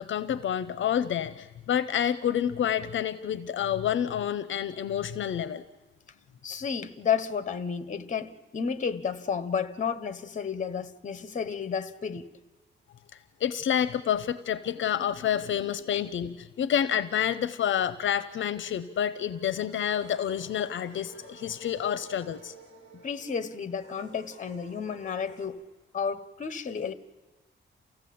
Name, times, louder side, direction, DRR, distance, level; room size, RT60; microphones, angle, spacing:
voice 1, 0.0-5.6 13.4-22.5, left 9 dB, 70° left, 0.6 m, -28 dB
voice 2, 6.4-12.3 15.9-16.0 22.9-25.6 25.9-26.9, left 6 dB, 40° left, 1.0 m, -32 dB
sound 1, 19.7-25.5, right 2 dB, 60° right, 5.8 m, -51 dB
28.5 x 15.5 x 8.6 m
wide cardioid pair, 155°, 20 cm